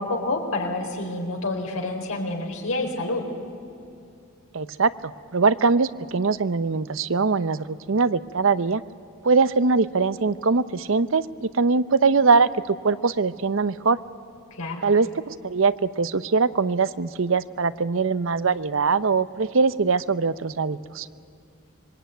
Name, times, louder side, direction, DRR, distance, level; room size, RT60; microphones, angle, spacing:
voice 1, 0.0-3.3 14.5-14.8, left 2 dB, 85° left, 2 dB, 4.3 m, -28 dB
voice 2, 4.5-8.8 9.2-14.0 14.8-21.1, right 4 dB, 65° right, 15 dB, 0.7 m, -22 dB
25.5 x 22.0 x 9.2 m, 2.4 s
head